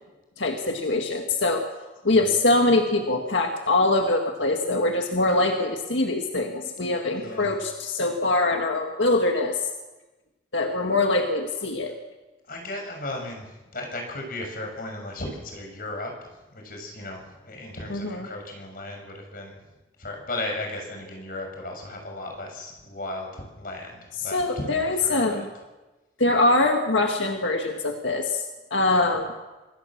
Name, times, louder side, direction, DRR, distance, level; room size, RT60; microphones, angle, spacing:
voice 1, 0.4-1.7 2.0-9.6 10.5-11.9 17.9-18.2 24.3-25.5 26.2-28.4 28.7-29.3, left 2 dB, 90° left, 3 dB, 1.9 m, -23 dB
voice 2, 7.1-7.5 12.5-19.6 20.0-25.5, left 2 dB, 50° left, 2 dB, 6.3 m, -36 dB
26.0 x 16.5 x 7.4 m, 1.1 s
head